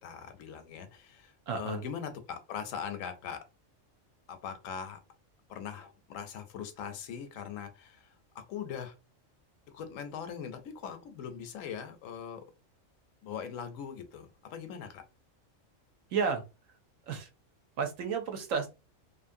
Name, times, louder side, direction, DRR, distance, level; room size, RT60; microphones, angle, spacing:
voice 1, 0.0-3.4 4.3-5.0 5.5-8.1 8.3-8.9 9.7-12.4 13.2-15.0, left 7 dB, 80° left, 1.0 m, -41 dB
voice 2, 1.5-1.8 16.1-16.4 17.1-17.3 17.8-18.7, right 5 dB, 80° right, 1.0 m, -31 dB
2.7 x 2.5 x 2.6 m
omnidirectional pair, 1.3 m